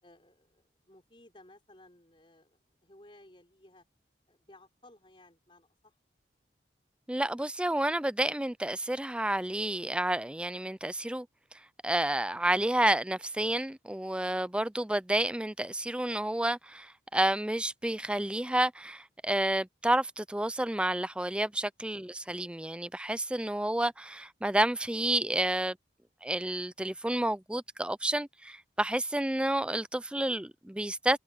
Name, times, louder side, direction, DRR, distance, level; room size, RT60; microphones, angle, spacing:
voice 1, 0.0-3.8 4.3-6.0 21.3-21.5, left 1 dB, 30° left, 4.3 m, -58 dB
voice 2, 7.1-11.3 11.8-25.8 26.2-31.2, right 1 dB, 5° right, 0.4 m, -30 dB
head